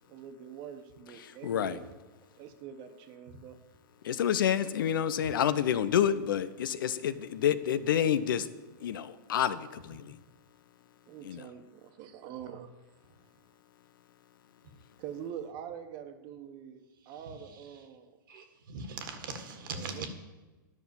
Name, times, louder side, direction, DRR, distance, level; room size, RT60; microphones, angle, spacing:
voice 1, 0.1-2.0 2.4-3.6 11.1-12.7 15.0-18.2 19.7-20.1, right 9 dB, 45° right, 1.2 m, -44 dB
voice 2, 1.4-1.8 4.0-8.5 8.8-10.2 11.2-11.4, left 9 dB, 75° left, 0.7 m, -28 dB
voice 3, 17.0-17.9 18.3-20.1, right 4 dB, 70° right, 1.7 m, -42 dB
11.0 x 6.1 x 7.1 m
hypercardioid pair, 120°, 11 cm